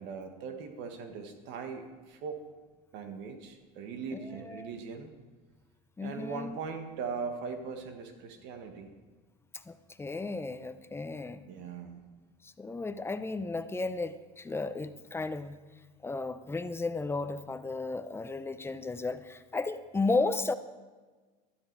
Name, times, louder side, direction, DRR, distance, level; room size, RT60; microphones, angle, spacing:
voice 1, 0.0-2.4 2.9-5.1 6.0-8.9 11.4-12.0, right 5 dB, 65° right, 6 dB, 1.6 m, -40 dB
voice 2, 4.1-4.7 6.0-6.6 9.5-11.5 12.4-15.6 16.0-20.5, left 3 dB, 10° left, 12 dB, 0.6 m, -34 dB
12.5 x 12.0 x 4.7 m, 1.4 s
supercardioid pair, 105°, 20 cm